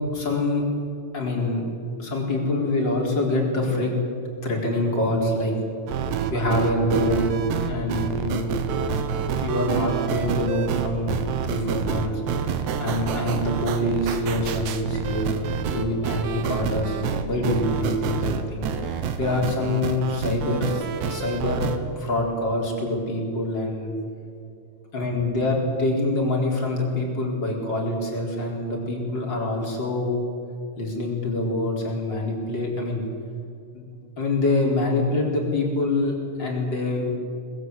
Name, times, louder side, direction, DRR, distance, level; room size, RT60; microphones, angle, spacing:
voice 1, 0.1-0.6 1.1-3.9 4.4-5.6 6.3-7.4 7.7-8.6 9.4-12.5 12.8-18.6 18.9-21.7 21.9-23.9 24.9-30.2 30.8-33.0 33.7-33.8 34.2-37.1, left 2 dB, 25° left, -1 dB, 4.4 m, -25 dB
sound 1, 5.9-21.8, right 7 dB, 80° right, 3.5 m, -27 dB
23.0 x 20.5 x 8.2 m, 2.4 s
omnidirectional pair, 5.0 m